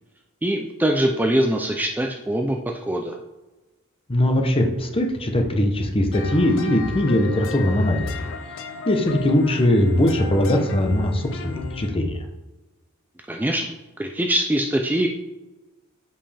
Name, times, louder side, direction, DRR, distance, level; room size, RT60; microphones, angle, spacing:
voice 1, 0.4-3.2 13.3-13.6 14.0-15.1, right 1 dB, 10° right, 2 dB, 0.4 m, -23 dB
voice 2, 4.1-8.2 8.9-12.1, left 1 dB, 25° left, 4 dB, 0.9 m, -20 dB
sound 1, 6.1-11.9, left 5 dB, 60° left, 0.6 m, -35 dB
7.6 x 5.4 x 3.4 m, 1.1 s
head